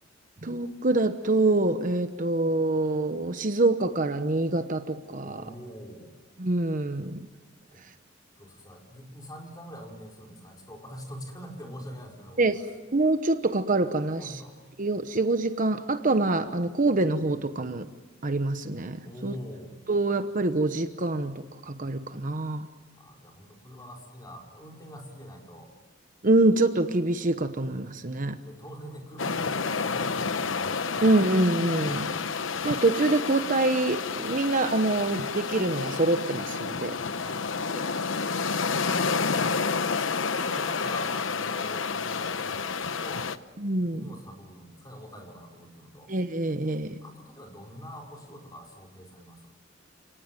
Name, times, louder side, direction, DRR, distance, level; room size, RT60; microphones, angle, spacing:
voice 1, 0.4-5.4 6.4-7.3 12.4-12.6 12.9-14.3 14.8-17.9 18.2-19.3 19.9-22.7 26.2-28.4 31.0-32.1 32.6-36.9 43.6-44.0 46.1-47.0, right 2 dB, 45° right, 10 dB, 1.0 m, -25 dB
voice 2, 5.2-6.2 7.7-7.8 8.4-12.7 14.2-14.6 19.0-19.7 22.9-25.7 28.4-31.1 37.1-37.5 39.3-43.3 43.9-46.1 47.0-49.5, equal, 20° left, 0 dB, 4.7 m, -44 dB
sound 1, 29.2-43.4, left 5 dB, 80° left, 1.0 m, -30 dB
29.5 x 19.0 x 9.1 m, 1.3 s
head